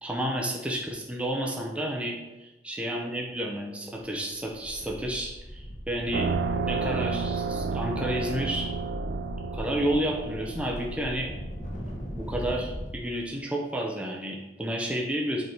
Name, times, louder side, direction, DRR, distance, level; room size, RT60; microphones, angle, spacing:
voice 1, 0.0-6.3 6.6-8.7 9.5-11.3 12.2-15.4, right 1 dB, 5° right, -1 dB, 0.7 m, -31 dB
sound 1, 4.1-4.2 4.5-12.9, equal, 45° left, 1.2 m, -38 dB
sound 2, 6.1-12.1, right 5 dB, 70° right, 0.4 m, -32 dB
5.5 x 4.6 x 4.5 m, 1.0 s
head